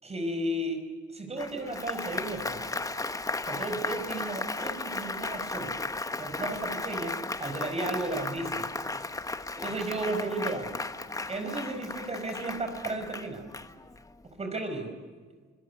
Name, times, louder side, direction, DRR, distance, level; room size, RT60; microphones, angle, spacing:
voice 1, 0.0-0.8 1.1-2.8 3.4-5.7 6.2-8.7 9.6-10.8 11.3-13.5 14.2-15.0, right 2 dB, 30° right, 5 dB, 5.0 m, -34 dB
Applause, 1.4-14.1, left 3 dB, 15° left, 1.3 m, -35 dB
26.0 x 17.0 x 9.3 m, 1.4 s
cardioid pair, 90°, 20 cm